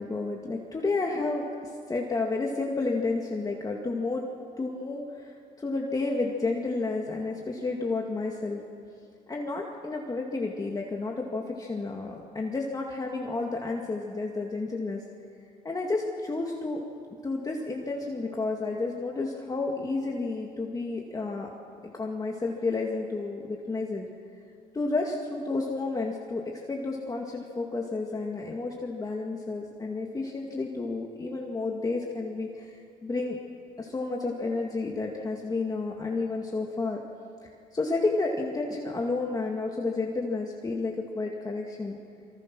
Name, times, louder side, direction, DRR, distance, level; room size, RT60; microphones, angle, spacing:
voice 1, 0.0-4.2 4.6-8.6 9.3-15.0 15.6-16.8 17.2-21.5 22.0-24.1 24.7-33.4 33.8-37.0 37.7-42.0, left 3 dB, 20° left, -1 dB, 2.2 m, -31 dB
26.0 x 24.5 x 6.2 m, 2.5 s
cardioid pair, 110°, 17 cm